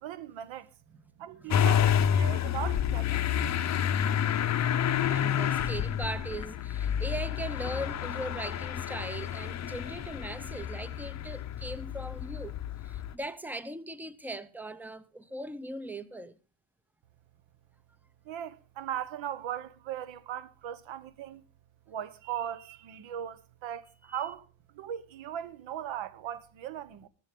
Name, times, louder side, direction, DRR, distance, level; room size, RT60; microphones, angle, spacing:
voice 1, 0.0-0.7 1.2-3.3 18.2-21.4 21.9-24.5 24.7-27.1, right 10 dB, 70° right, 1.2 m, -38 dB
voice 2, 1.4-2.3 4.8-12.6 12.8-16.4 24.1-24.2, right 1 dB, 5° right, 0.6 m, -40 dB
Motor vehicle (road) / Engine starting, 1.5-13.1, left 9 dB, 35° left, 0.7 m, -29 dB
14.5 x 13.0 x 3.7 m
cardioid pair, 155°, 47 cm